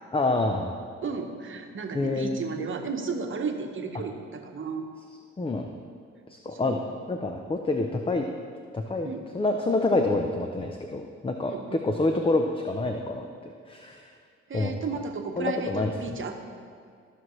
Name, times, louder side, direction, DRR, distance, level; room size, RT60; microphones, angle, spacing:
voice 1, 0.1-0.7 1.9-2.4 5.4-5.7 6.3-6.8 7.1-8.2 8.7-11.5 11.8-14.1 14.5-14.7 15.3-16.2, left 2 dB, 20° left, 4 dB, 0.6 m, -27 dB
voice 2, 1.0-4.9 6.5-6.8 9.0-9.2 11.4-11.8 14.5-16.4, right 4 dB, 40° right, 4 dB, 1.1 m, -33 dB
14.0 x 6.1 x 3.2 m, 2.2 s
cardioid pair, 90°, 30 cm